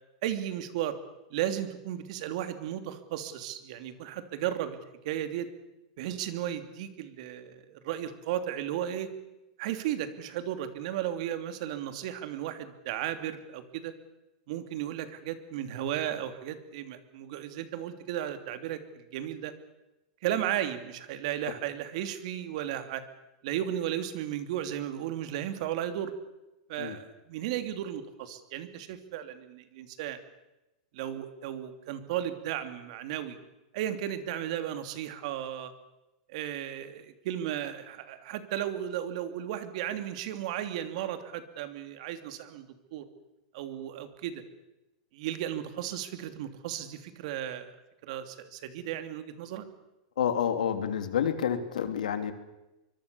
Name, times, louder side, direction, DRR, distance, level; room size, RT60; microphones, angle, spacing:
voice 1, 0.2-1.0 1.3-4.8 5.0-5.5 6.0-9.1 9.6-14.0 14.5-19.5 20.2-23.0 23.4-26.1 26.7-30.2 30.9-33.4 33.7-35.7 36.3-43.0 43.5-44.4 45.1-47.8 48.0-49.6, right 11 dB, 60° right, 9 dB, 3.1 m, -35 dB
voice 2, 50.2-52.3, left 8 dB, 90° left, 9 dB, 2.9 m, -29 dB
24.5 x 23.5 x 7.0 m, 0.97 s
supercardioid pair, 135°, 4 cm